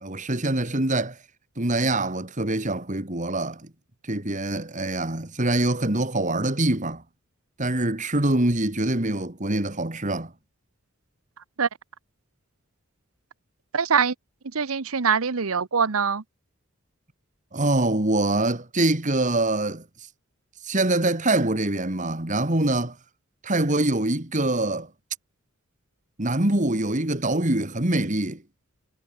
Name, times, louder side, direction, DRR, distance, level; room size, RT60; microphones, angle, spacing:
voice 1, 0.0-1.2 1.6-3.7 4.0-7.0 7.6-10.3 17.5-19.9 20.6-23.0 23.4-24.9 26.2-28.4, right 2 dB, 35° right, 2.2 m, -24 dB
voice 2, 13.7-14.1 14.5-16.2, right 6 dB, 85° right, 0.9 m, -23 dB
head